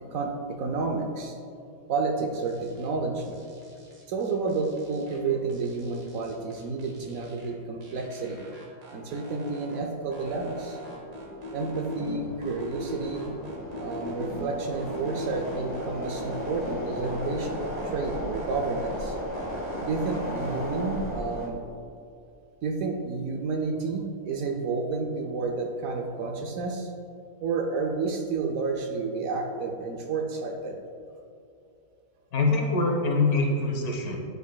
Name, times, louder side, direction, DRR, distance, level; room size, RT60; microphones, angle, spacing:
voice 1, 0.1-3.4 4.1-8.4 8.9-10.8 11.5-13.3 13.8-19.2 19.8-21.6 22.6-26.9 27.4-30.8, right 4 dB, 70° right, 2 dB, 0.9 m, -30 dB
sound 1, 2.3-2.9 3.2-5.2 5.5-7.5 7.8-9.8 10.1-12.1 12.4-14.4 14.7-16.7 17.0-19.0 19.3-20.5, left 1 dB, 85° right, 1.8 m, -41 dB
sound 2, 10.0-21.5, equal, 10° right, 0.7 m, -36 dB
voice 2, 32.3-34.2, left 3 dB, 70° left, 1 dB, 1.4 m, -24 dB
9.2 x 5.4 x 2.3 m, 2.4 s
omnidirectional pair, 1.7 m